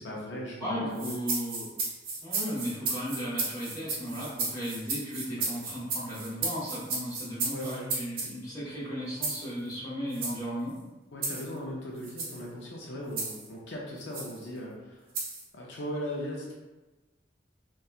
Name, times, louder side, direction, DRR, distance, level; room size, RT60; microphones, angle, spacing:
voice 1, 0.0-1.2 5.4-5.5 7.5-7.9 11.1-15.0 15.5-16.5, equal, 75° left, -3 dB, 0.5 m, -38 dB
voice 2, 0.6-1.7 2.2-10.7, equal, 20° left, -10 dB, 1.0 m, -36 dB
sound 1, 0.9-8.3 9.2-9.5 10.1-10.4 11.2-11.5 12.0-12.4 13.2-13.5 14.1-14.3 15.1-15.4, right 3 dB, 50° right, 0.5 m, -34 dB
2.7 x 2.2 x 2.3 m, 1.1 s
head